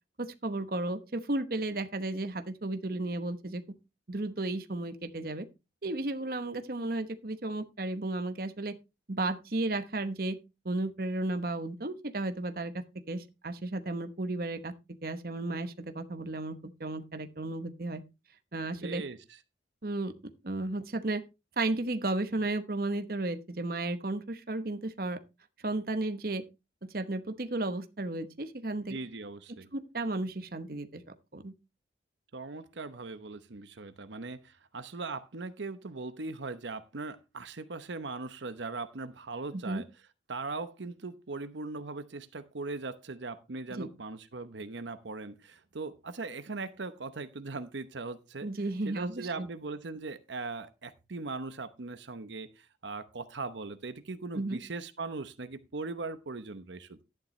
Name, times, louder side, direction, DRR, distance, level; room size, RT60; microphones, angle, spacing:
voice 1, 0.2-3.6 4.1-5.5 5.8-8.7 9.1-10.4 10.6-14.7 15.0-18.0 18.5-19.1 19.8-20.1 20.4-21.2 21.6-25.2 25.6-26.4 26.8-29.0 29.7-31.0 31.3-31.5 39.7-39.8 43.8-43.9 48.4-49.5 54.3-54.6, right 2 dB, 50° right, 1.0 m, -34 dB
voice 2, 18.8-19.4 28.9-29.7 32.3-39.9 40.3-48.5 48.8-57.0, right 3 dB, 80° right, 0.9 m, -39 dB
11.5 x 10.5 x 3.2 m
head